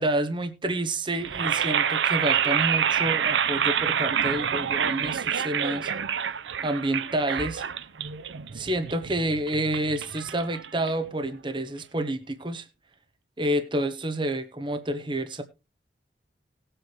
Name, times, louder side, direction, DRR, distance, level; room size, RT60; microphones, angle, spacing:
voice 1, 0.0-5.9 6.6-7.6 8.5-12.7 13.4-15.4, right 1 dB, 25° right, 1.0 m, -29 dB
sound 1, 1.2-11.3, right 8 dB, 85° right, 0.7 m, -27 dB
18.5 x 7.9 x 3.0 m
head